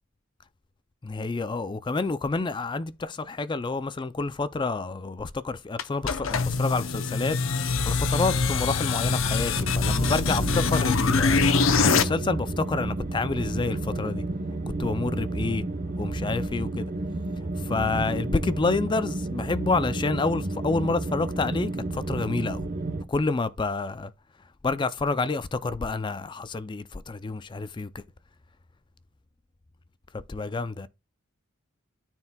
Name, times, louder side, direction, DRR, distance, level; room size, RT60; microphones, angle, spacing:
voice 1, 1.0-7.4 7.8-11.4 11.8-14.2 14.8-15.6 16.0-16.9 17.6-22.7 23.1-24.1 24.6-28.0 30.1-30.9, left 3 dB, 25° left, 0.4 m, -28 dB
sound 1, 5.8-12.0, left 4 dB, 70° left, 0.7 m, -24 dB
sound 2, 9.6-23.0, right 2 dB, 45° right, 0.8 m, -31 dB
13.0 x 4.5 x 2.3 m
head